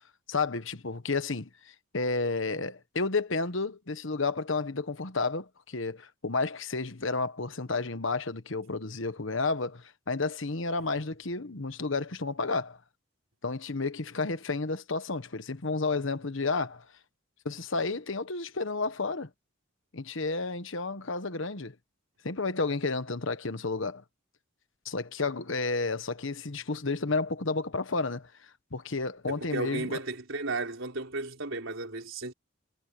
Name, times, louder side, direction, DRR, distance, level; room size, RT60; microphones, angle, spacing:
voice 1, 0.3-12.8 13.4-16.8 17.4-19.3 19.9-21.7 22.2-24.0 24.8-28.3 28.7-30.0, left 3 dB, 65° left, 1.3 m, -31 dB
voice 2, 29.3-32.3, right 2 dB, 65° right, 4.3 m, -34 dB
head